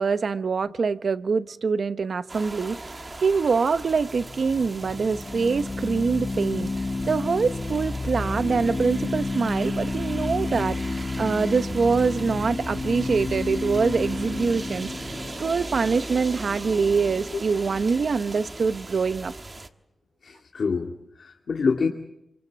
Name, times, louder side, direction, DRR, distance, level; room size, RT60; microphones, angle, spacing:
voice 1, 0.0-6.7 7.1-19.3, right 5 dB, 65° right, 0.9 m, -24 dB
sound 1, 2.3-19.7, right 2 dB, 25° right, 1.5 m, -39 dB
sound 2, 3.7-16.8, left 3 dB, 30° left, 1.1 m, -31 dB
voice 2, 20.2-21.9, left 5 dB, 70° left, 2.5 m, -26 dB
28.0 x 25.5 x 7.4 m
wide cardioid pair, 130°, 0 cm